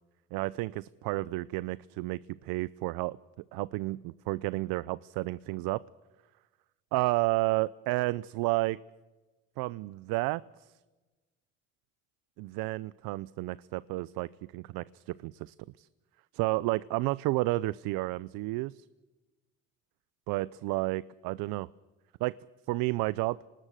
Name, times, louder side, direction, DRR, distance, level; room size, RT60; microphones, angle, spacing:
voice 1, 0.3-3.2 3.5-5.8 6.9-8.8 9.6-10.7 12.4-15.9 16.3-18.9 20.3-21.7 22.2-22.4 22.7-23.4, right 20 dB, 75° right, 19 dB, 0.6 m, -31 dB
25.0 x 20.0 x 6.4 m, 1.2 s
supercardioid pair, 80°, 36 cm